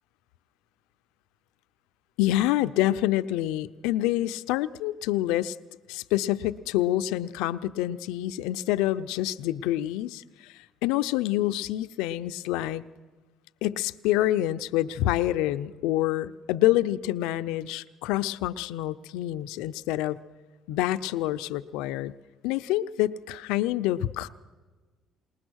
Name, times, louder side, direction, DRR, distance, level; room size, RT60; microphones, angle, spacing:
voice 1, 2.2-5.6 5.9-10.5 10.8-12.8 13.6-20.2 20.7-22.1 22.4-24.3, left 14 dB, 85° left, 13 dB, 0.6 m, -27 dB
20.5 x 20.0 x 6.4 m, 1.3 s
supercardioid pair, 90°, 0 cm